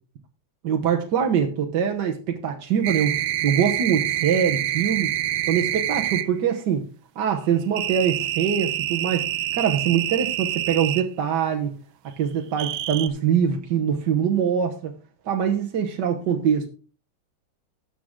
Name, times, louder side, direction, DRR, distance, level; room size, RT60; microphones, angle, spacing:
voice 1, 0.6-5.1 5.5-6.8 7.2-11.7 12.2-14.9 15.2-16.7, right 8 dB, 60° right, 1.6 m, -23 dB
sound 1, 2.8-6.3 7.8-11.1 12.6-13.1, right 13 dB, 85° right, 1.4 m, -26 dB
12.5 x 7.6 x 3.7 m
omnidirectional pair, 2.2 m